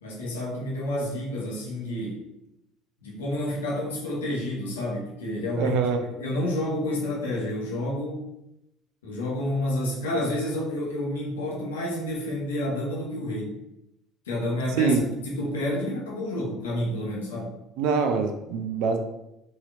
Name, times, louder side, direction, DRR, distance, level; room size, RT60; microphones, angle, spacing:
voice 1, 0.0-2.2 3.0-5.7 6.2-8.2 9.0-13.6 14.3-15.0 15.2-17.5, left 1 dB, 75° left, -4 dB, 1.0 m, -29 dB
voice 2, 5.6-6.1 14.7-15.0 17.8-19.0, right 5 dB, 60° right, 6 dB, 0.4 m, -24 dB
4.0 x 3.0 x 2.4 m, 0.88 s
figure-of-eight pair, 60°, 0 cm